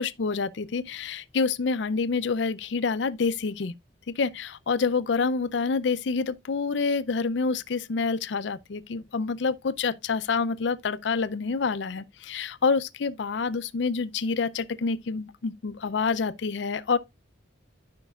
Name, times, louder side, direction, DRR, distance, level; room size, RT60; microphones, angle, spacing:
voice 1, 0.0-3.7 4.1-17.0, left 4 dB, 65° left, 0.5 m, -27 dB
13.0 x 5.2 x 2.4 m
head